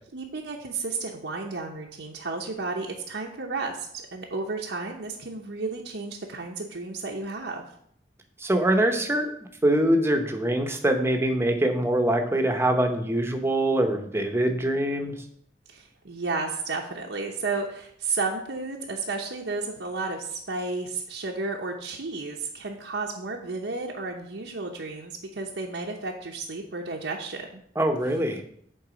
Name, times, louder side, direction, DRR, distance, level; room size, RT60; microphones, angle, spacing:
voice 1, 0.1-7.6 15.7-27.6, right 3 dB, 80° right, -1 dB, 0.8 m, -32 dB
voice 2, 8.4-9.3 9.6-15.2 27.8-28.4, right 1 dB, 15° right, 5 dB, 0.8 m, -23 dB
8.0 x 3.9 x 5.1 m, 0.66 s
head